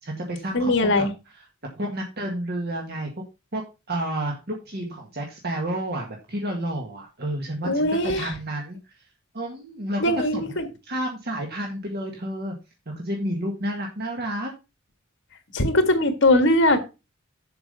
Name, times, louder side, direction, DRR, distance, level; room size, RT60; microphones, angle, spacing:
voice 1, 0.0-1.1 1.3-1.4 1.8-3.1 3.5-9.0 9.3-10.0 10.3-10.5 10.9-12.6 12.9-14.5, right 1 dB, 55° right, 1 dB, 1.9 m, -30 dB
voice 2, 0.5-1.1 7.6-8.3 10.0-10.7 15.5-16.9, left 1 dB, 65° left, 6 dB, 1.9 m, -20 dB
7.2 x 5.9 x 5.5 m, 0.27 s
head